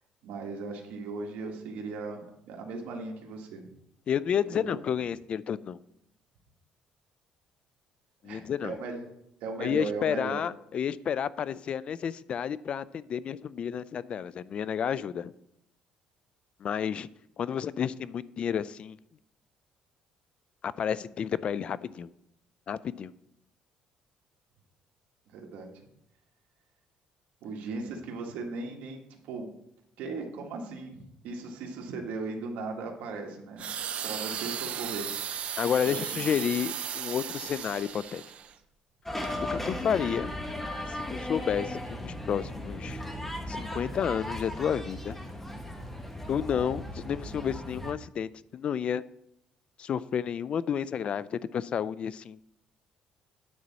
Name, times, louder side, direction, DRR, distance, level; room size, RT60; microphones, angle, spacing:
voice 1, 0.2-3.6 4.5-4.8 8.2-9.0 9.4-10.4 25.3-25.7 27.4-29.5 30.0-33.7 34.0-35.1 35.8-36.4, right 3 dB, 80° right, 2 dB, 1.7 m, -38 dB
voice 2, 4.1-5.8 8.2-8.8 9.6-15.3 16.6-17.1 17.4-19.0 20.6-22.1 22.7-23.1 35.6-38.2 39.4-40.3 40.9-43.0 43.5-45.2 46.3-49.0 49.8-52.4, left 8 dB, 45° left, 18 dB, 0.4 m, -31 dB
sound 1, 33.6-38.5 39.2-39.4, right 9 dB, 55° right, 0.7 m, -36 dB
sound 2, 39.0-47.9, left 1 dB, 10° left, 1.3 m, -36 dB
9.5 x 4.0 x 7.3 m, 0.80 s
cardioid pair, 115°, 3 cm